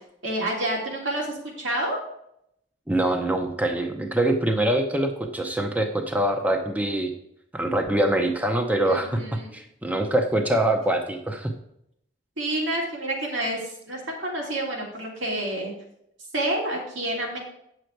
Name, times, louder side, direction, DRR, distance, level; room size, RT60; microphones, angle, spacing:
voice 1, 0.2-2.0 8.9-9.5 12.4-15.7 16.3-17.4, right 1 dB, 90° right, -2 dB, 2.9 m, -29 dB
voice 2, 2.9-7.1 7.5-9.2 9.5-11.5, right 1 dB, 10° right, 3 dB, 0.6 m, -24 dB
8.9 x 6.5 x 4.5 m, 0.76 s
head